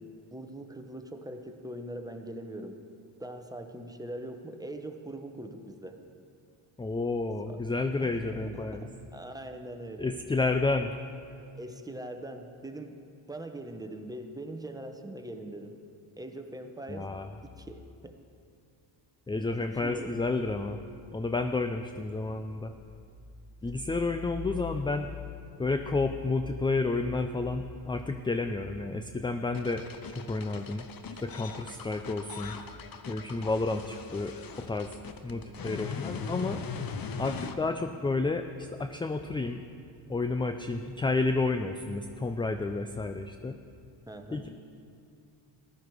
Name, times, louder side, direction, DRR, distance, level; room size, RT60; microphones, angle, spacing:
voice 1, 0.0-2.8 3.2-6.0 7.5-7.6 8.0-8.8 9.1-10.1 11.6-13.0 13.3-15.8 16.2-17.1 17.4-18.2 19.8-20.3 35.3-35.7 44.1-44.5, right 1 dB, 5° right, 5 dB, 1.1 m, -42 dB
voice 2, 6.8-8.9 10.0-10.9 16.9-17.3 19.3-20.8 21.1-22.7 23.6-25.1 25.6-30.9 31.2-32.6 33.1-34.9 35.2-36.6 37.2-39.6 40.1-43.6 44.3-44.5, left 3 dB, 10° left, 7 dB, 0.4 m, -31 dB
sound 1, 29.5-37.5, left 5 dB, 45° left, 1.0 m, -40 dB
14.5 x 11.5 x 4.8 m, 2.5 s
cardioid pair, 75°, 50 cm